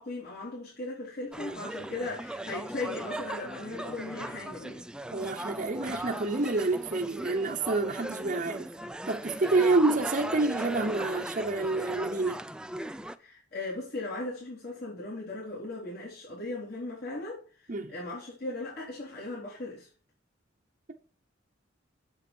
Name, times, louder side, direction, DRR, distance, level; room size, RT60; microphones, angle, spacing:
voice 1, 0.0-4.9 13.2-19.9, left 2 dB, 55° left, 4.1 m, -38 dB
sound 1, 1.3-13.2, right 1 dB, 5° right, 0.4 m, -38 dB
voice 2, 5.1-8.7 9.1-12.4 17.7-17.9, right 3 dB, 45° right, 0.9 m, -28 dB
8.1 x 7.3 x 4.4 m
head